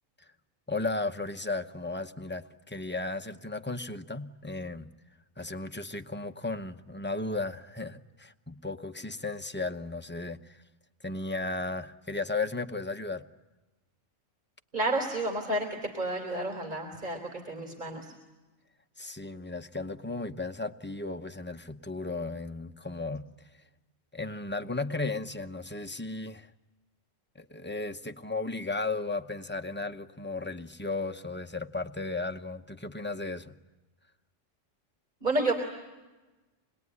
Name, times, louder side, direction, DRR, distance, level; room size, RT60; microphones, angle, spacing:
voice 1, 0.7-4.9 5.4-10.6 11.0-13.2 19.0-23.3 24.1-26.5 27.3-33.5, left 3 dB, 10° left, 6 dB, 0.7 m, -35 dB
voice 2, 14.7-18.1 35.2-35.5, right 2 dB, 40° right, 1 dB, 3.6 m, -30 dB
27.0 x 21.0 x 9.6 m, 1.2 s
omnidirectional pair, 1.3 m